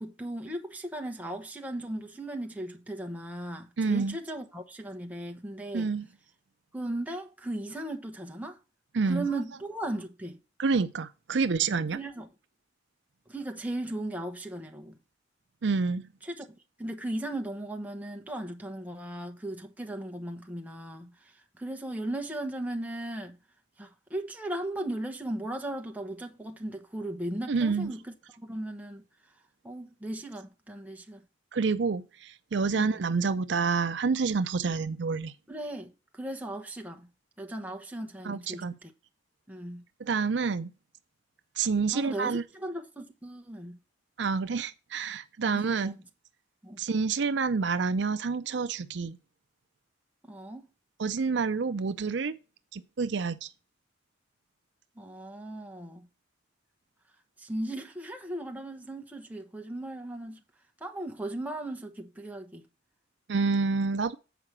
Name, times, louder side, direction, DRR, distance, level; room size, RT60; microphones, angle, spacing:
voice 1, 0.0-5.9 6.7-8.6 9.0-10.4 11.9-12.3 13.3-15.0 16.2-21.1 21.6-23.4 23.8-29.0 29.6-31.2 32.8-33.0 35.5-37.1 37.4-38.9 39.5-39.8 41.9-43.8 45.5-46.0 46.6-46.8 50.2-50.7 55.0-56.1 57.4-60.4 60.8-62.6, right 1 dB, 10° right, 1.1 m, -37 dB
voice 2, 3.8-4.2 5.7-6.1 8.9-9.2 10.6-12.0 15.6-16.0 27.5-27.9 31.5-35.3 38.2-38.8 40.0-40.7 41.6-42.4 44.2-45.9 46.8-49.2 51.0-52.3 52.7-53.5 63.3-64.2, right 4 dB, 70° right, 0.5 m, -28 dB
8.1 x 4.9 x 6.0 m
head